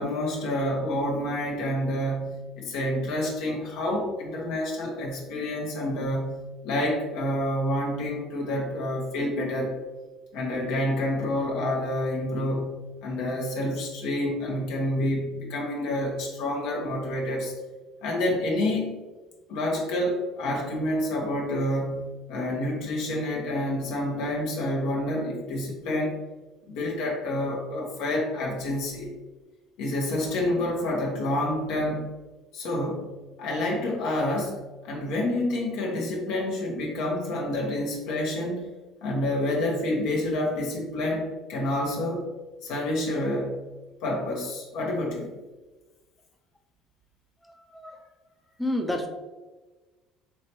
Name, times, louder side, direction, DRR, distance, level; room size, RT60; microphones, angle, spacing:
voice 1, 0.0-9.7 10.3-12.8 13.0-17.5 18.0-18.9 19.5-26.1 26.7-29.1 29.8-32.0 32.5-33.1 33.4-38.7 39.0-42.2 42.6-43.6 44.0-45.3, left 1 dB, 75° left, -1 dB, 1.0 m, -28 dB
voice 2, 48.6-49.1, left 1 dB, 5° left, 2 dB, 0.6 m, -28 dB
4.6 x 3.2 x 3.0 m, 1.2 s
supercardioid pair, 80°, 0 cm